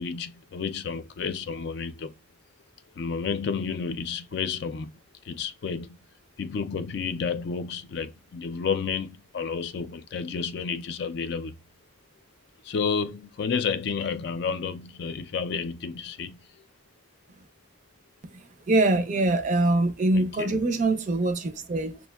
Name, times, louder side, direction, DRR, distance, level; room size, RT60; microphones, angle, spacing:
voice 1, 0.0-2.1 3.0-4.9 5.3-6.0 6.4-11.6 12.6-16.4 20.1-20.6, left 5 dB, 55° left, 0.3 m, -31 dB
voice 2, 18.3-22.0, right 2 dB, 40° right, 0.4 m, -24 dB
6.0 x 2.1 x 2.2 m
head